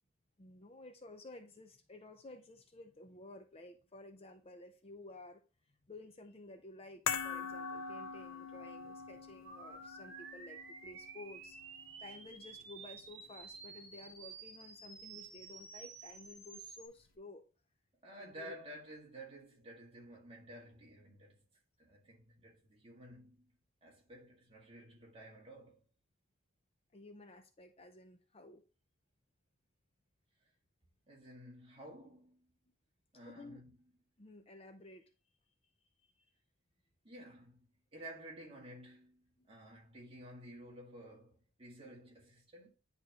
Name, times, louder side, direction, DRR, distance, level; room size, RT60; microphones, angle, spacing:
voice 1, 0.4-5.4 5.8-11.6 12.0-17.4 18.2-18.6 26.9-28.6 33.3-33.6 34.2-35.1 36.2-36.3 39.4-39.5, left 2 dB, 30° left, 0.6 m, -53 dB
sound 1, 7.1-13.5 13.7-13.9, left 6 dB, 75° left, 0.7 m, -43 dB
sound 2, 9.4-16.9, right 4 dB, 60° right, 1.8 m, -51 dB
voice 2, 18.0-21.4 21.8-23.5 23.8-25.8 31.1-32.5 33.1-33.7 37.0-37.7 37.9-42.7, right 1 dB, 30° right, 1.8 m, -53 dB
10.0 x 3.6 x 2.9 m
head